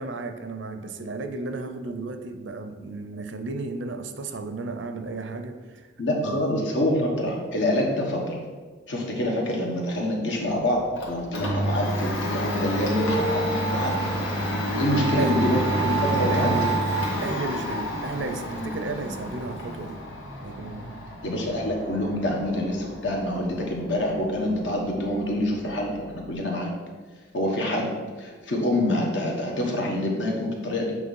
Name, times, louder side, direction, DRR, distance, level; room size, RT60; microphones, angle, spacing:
voice 1, 0.0-5.9 6.2-6.5 14.9-15.6 16.3-16.8 17.2-20.0 20.4-20.9, right 3 dB, 70° right, 7 dB, 0.6 m, -33 dB
voice 2, 6.0-8.4 8.9-14.1 14.8-16.7 21.2-26.7 27.3-27.9 28.2-31.0, left 1 dB, 65° left, 0 dB, 1.3 m, -26 dB
Domestic sounds home sounds, 10.5-26.3, right 1 dB, 85° left, 1.7 m, -29 dB
Guitar, 12.8-19.5, left 1 dB, 20° left, 1.0 m, -36 dB
7.8 x 3.2 x 5.5 m, 1.4 s
head